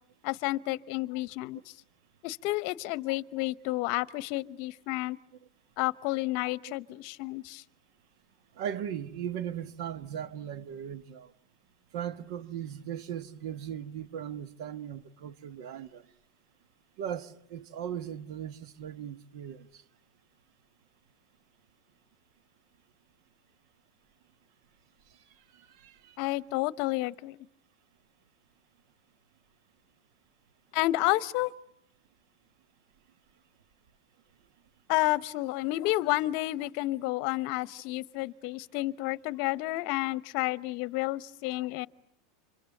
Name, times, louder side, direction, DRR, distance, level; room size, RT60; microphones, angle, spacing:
voice 1, 0.2-1.7 2.2-5.2 5.8-7.6 26.2-27.4 30.7-31.5 34.9-41.9, left 18 dB, 50° left, 1.0 m, -30 dB
voice 2, 8.6-11.3 11.9-16.0 17.0-19.8 25.5-26.2, right 9 dB, 60° right, 1.5 m, -38 dB
29.5 x 25.5 x 6.7 m
supercardioid pair, 145°, 3 cm